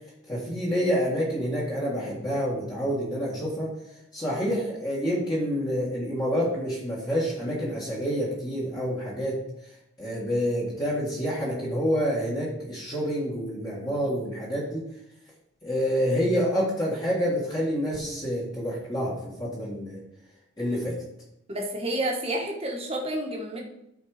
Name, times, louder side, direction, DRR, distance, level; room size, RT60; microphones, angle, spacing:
voice 1, 0.3-3.7 4.1-9.4 10.0-14.8 15.6-20.0 20.6-21.0, equal, 20° left, -6 dB, 1.9 m, -28 dB
voice 2, 21.5-23.6, right 1 dB, 30° right, 0 dB, 1.6 m, -30 dB
12.5 x 4.3 x 5.0 m, 0.81 s
head